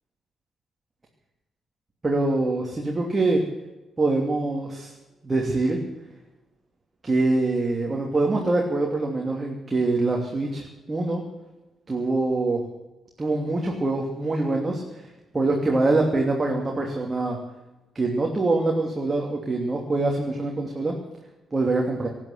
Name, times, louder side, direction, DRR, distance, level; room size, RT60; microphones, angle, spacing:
voice 1, 2.0-3.4 4.0-4.9 5.2-5.8 7.0-11.2 11.9-12.6 13.2-14.8 15.3-17.4 17.9-20.9 21.5-22.1, right 2 dB, 25° right, 0 dB, 2.9 m, -24 dB
18.5 x 9.7 x 8.0 m, 1.0 s
figure-of-eight pair, 40°, 0 cm